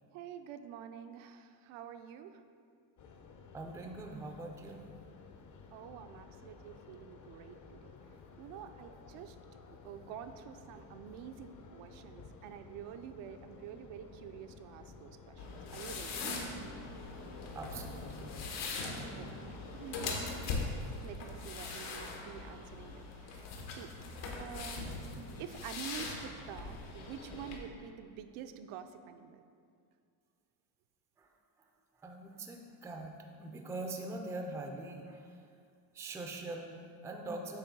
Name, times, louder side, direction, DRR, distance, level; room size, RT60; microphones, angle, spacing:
voice 1, 0.1-2.4 5.7-7.9 8.4-9.4 9.7-16.3 19.2-20.4 21.0-23.9 24.4-29.4, right 9 dB, 75° right, 8 dB, 0.6 m, -48 dB
sound 1, 3.0-20.0, left 5 dB, 40° left, 0.6 m, -54 dB
voice 2, 3.5-4.8 17.5-18.3 31.2-31.3 32.0-33.1 33.4-35.3 35.9-37.6, right 2 dB, 5° right, 3 dB, 0.3 m, -42 dB
sound 2, 15.4-27.6, left 3 dB, 80° left, 1.2 m, -41 dB
8.3 x 3.1 x 6.0 m, 2.3 s
cardioid pair, 125°, 50 cm